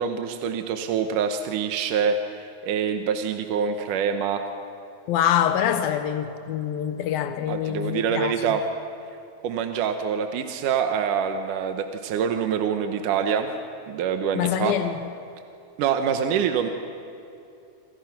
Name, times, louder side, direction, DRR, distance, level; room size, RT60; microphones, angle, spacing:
voice 1, 0.0-2.2 2.6-4.5 7.5-8.6 9.4-13.5 13.9-14.8 15.8-16.7, right 7 dB, 70° right, 2.3 m, -25 dB
voice 2, 5.1-8.6 14.4-15.0, left 10 dB, 80° left, 2.6 m, -25 dB
27.5 x 26.0 x 5.9 m
omnidirectional pair, 4.3 m